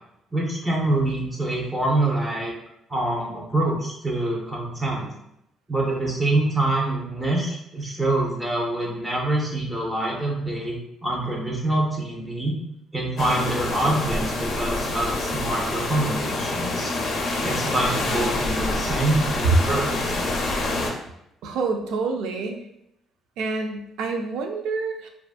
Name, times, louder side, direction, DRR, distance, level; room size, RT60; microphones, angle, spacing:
voice 1, 0.3-2.5 2.9-5.1 5.7-10.7 11.0-12.5 12.9-16.9 17.4-20.0, right 2 dB, 15° right, -2 dB, 0.5 m, -25 dB
sound 1, 13.2-20.9, left 2 dB, 50° left, 0.4 m, -27 dB
voice 2, 21.4-22.7 23.4-25.1, right 4 dB, 80° right, 3 dB, 0.3 m, -28 dB
2.5 x 2.3 x 2.3 m, 0.79 s
cardioid pair, 145°, 0 cm